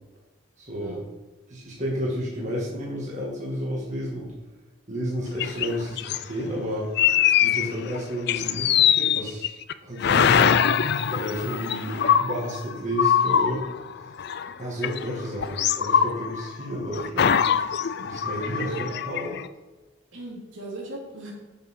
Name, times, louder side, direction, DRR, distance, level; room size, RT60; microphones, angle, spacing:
voice 1, 0.6-1.0 1.5-4.3 4.9-6.9 7.4-9.5 9.8-10.6 11.1-13.7 14.6-17.4 18.0-19.4, equal, 35° right, -5 dB, 2.4 m, -31 dB
sound 1, 5.4-6.2 7.0-8.0 8.3-9.7 10.0-14.5 14.8-16.6 16.9-19.5, left 8 dB, 55° left, 0.4 m, -23 dB
voice 2, 18.4-18.8 20.1-21.3, right 2 dB, 70° right, -3 dB, 3.0 m, -38 dB
8.9 x 7.4 x 4.7 m, 1.1 s
head